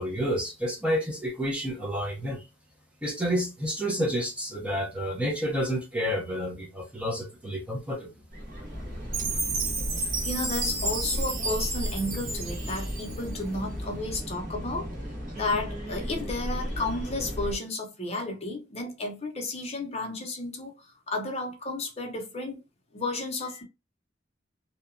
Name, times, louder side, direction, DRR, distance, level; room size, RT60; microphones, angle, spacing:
voice 1, 0.0-2.4 3.0-8.1, equal, 5° right, 0.6 m, -29 dB
sound 1, 8.3-17.6, equal, 45° right, 1.1 m, -35 dB
Chime, 9.1-13.4, right 3 dB, 80° right, 0.9 m, -32 dB
voice 2, 10.2-14.9 15.3-22.6 22.9-23.6, left 2 dB, 35° left, 0.7 m, -32 dB
2.8 x 2.2 x 2.5 m
head